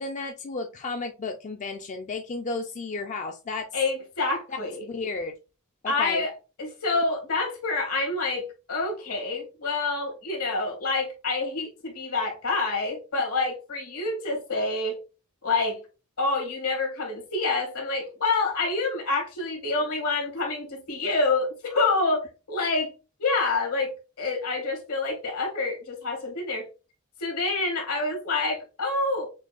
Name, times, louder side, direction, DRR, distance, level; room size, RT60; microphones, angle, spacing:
voice 1, 0.0-3.7 4.8-5.3 5.8-6.2, left 3 dB, 35° left, 0.4 m, -33 dB
voice 2, 3.7-4.8 5.9-6.3 6.6-15.0 15.4-15.8 16.2-22.9 23.2-26.7 27.2-29.3, left 3 dB, 75° left, 1.7 m, -27 dB
6.1 x 2.3 x 2.4 m
head